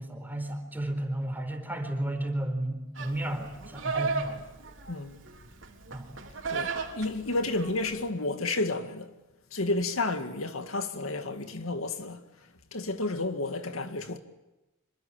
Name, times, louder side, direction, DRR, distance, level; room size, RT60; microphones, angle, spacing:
voice 1, 0.0-4.4 5.9-6.1, right 1 dB, 10° right, 4.4 m, -33 dB
Livestock farm animals working animals, 3.0-8.1, right 4 dB, 65° right, 3.7 m, -36 dB
voice 2, 4.9-5.2 6.5-9.1 9.5-12.2 12.7-14.2, left 2 dB, 90° left, 2.1 m, -31 dB
26.5 x 24.0 x 8.7 m
head